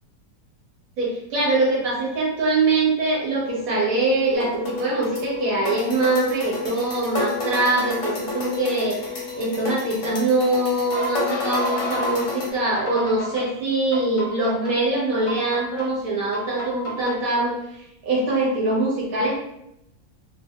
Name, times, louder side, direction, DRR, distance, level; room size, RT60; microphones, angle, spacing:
voice 1, 1.0-19.4, right 2 dB, 65° right, -5 dB, 1.2 m, -23 dB
sound 1, 3.3-12.3 12.8-13.4 13.9-14.7 15.3-15.9 16.3-17.1, left 1 dB, 40° left, 0.8 m, -32 dB
sound 2, 4.3-12.5, left 3 dB, 60° left, 0.9 m, -31 dB
2.6 x 2.6 x 2.6 m, 0.81 s
omnidirectional pair, 1.7 m